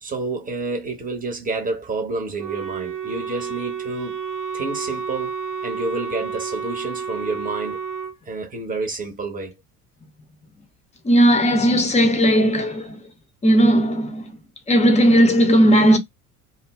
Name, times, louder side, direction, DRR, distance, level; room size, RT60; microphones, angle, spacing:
voice 1, 0.0-4.2 4.5-5.3 5.6-7.8 8.2-9.5, right 3 dB, 20° right, 0.9 m, -29 dB
Wind instrument woodwind instrument, 2.4-8.1, right 6 dB, 40° right, 1.0 m, -30 dB
voice 2, 11.0-13.0 13.4-14.4 14.7-16.0, equal, 15° left, 0.7 m, -16 dB
2.2 x 2.1 x 3.3 m
figure-of-eight pair, 60°, 44 cm